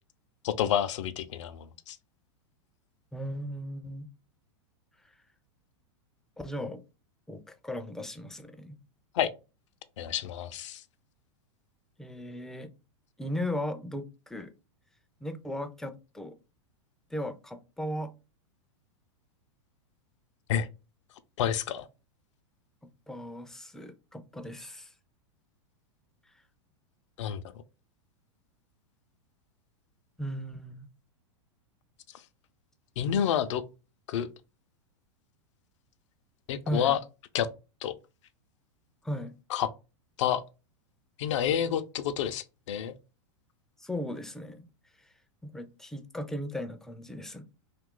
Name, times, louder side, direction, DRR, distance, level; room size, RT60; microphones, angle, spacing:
voice 1, 0.4-2.0 9.1-9.3 10.0-10.8 20.5-20.7 21.4-21.9 27.2-27.4 33.0-33.6 34.1-34.3 36.5-37.0 37.3-37.5 37.8-37.9 39.5-39.7 40.2-40.4 41.2-42.9, left 9 dB, 70° left, 0.4 m, -29 dB
voice 2, 3.1-4.1 5.0-5.2 6.4-6.8 7.3-8.8 12.0-12.7 13.2-14.5 15.2-16.4 17.1-18.1 23.1-24.9 26.3-26.4 30.2-30.9 36.7-37.0 39.0-39.3 43.8-44.7 45.0-45.1 45.4-47.4, equal, 5° left, 0.3 m, -37 dB
2.7 x 2.4 x 3.6 m
hypercardioid pair, 120°, 16 cm